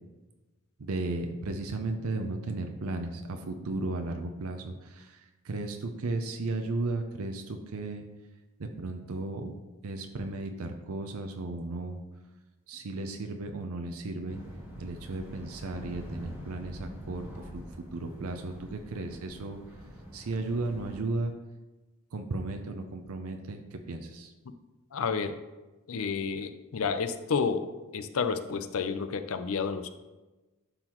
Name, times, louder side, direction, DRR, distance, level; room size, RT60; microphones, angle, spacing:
voice 1, 0.8-8.1 8.6-9.5 9.8-12.0 12.7-14.4 14.8-19.6 20.1-21.3 22.1-24.3, right 2 dB, 80° right, 5 dB, 0.6 m, -35 dB
sound 1, 14.3-21.0, equal, 10° right, 1.6 m, -45 dB
voice 2, 24.9-25.3 25.9-27.7 27.9-29.9, left 5 dB, 70° left, 9 dB, 0.5 m, -30 dB
11.5 x 3.9 x 3.0 m, 1.1 s
head